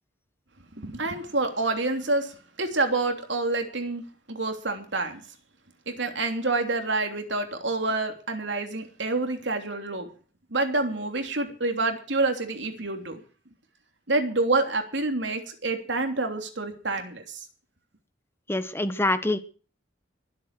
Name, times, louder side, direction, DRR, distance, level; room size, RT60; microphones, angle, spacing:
voice 1, 0.7-4.0 4.3-5.2 5.9-10.1 10.5-13.2 14.1-17.4, right 2 dB, 70° right, 5 dB, 3.2 m, -27 dB
voice 2, 18.5-19.4, left 2 dB, 15° left, 11 dB, 1.2 m, -25 dB
23.0 x 8.2 x 6.1 m, 0.39 s
head